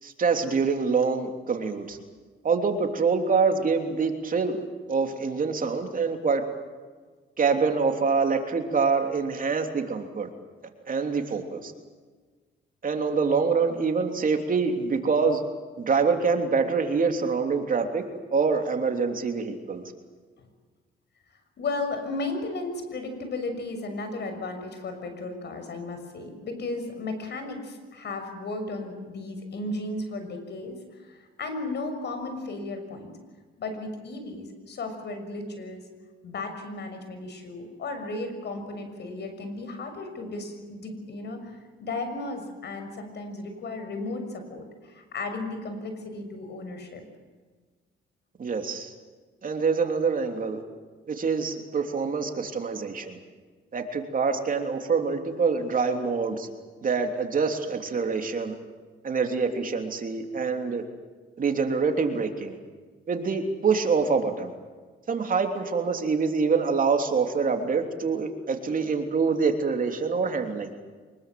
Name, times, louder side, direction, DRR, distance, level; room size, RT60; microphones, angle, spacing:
voice 1, 0.0-2.0 2.4-6.4 7.4-10.3 10.9-11.7 12.8-15.4 15.8-18.0 18.3-19.8 48.4-48.9 49.4-50.6 51.1-53.2 53.7-56.5 56.8-58.6 59.0-60.8 61.4-62.6 63.1-64.5 65.1-70.7, right 5 dB, 45° right, 4 dB, 3.2 m, -25 dB
voice 2, 21.6-33.1 33.6-35.8 36.2-47.0, left 2 dB, 60° left, 7 dB, 6.5 m, -35 dB
25.0 x 22.0 x 7.8 m, 1.4 s
cardioid pair, 90°, 20 cm